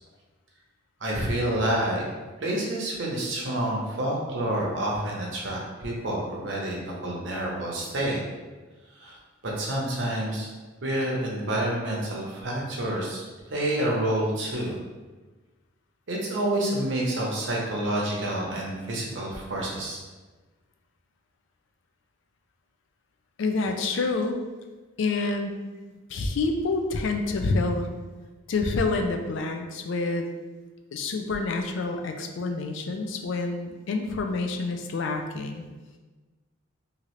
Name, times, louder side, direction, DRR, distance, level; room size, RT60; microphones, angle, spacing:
voice 1, 1.0-2.0 2.4-8.2 9.0-9.2 9.4-10.5 10.8-13.2 13.5-14.8 16.1-20.0, right 1 dB, 60° right, -2 dB, 0.7 m, -28 dB
voice 2, 23.4-24.4 25.0-25.6 26.1-27.9 28.5-30.3 30.9-35.7, left 3 dB, 65° left, 4 dB, 0.3 m, -27 dB
2.8 x 2.4 x 3.0 m, 1.2 s
head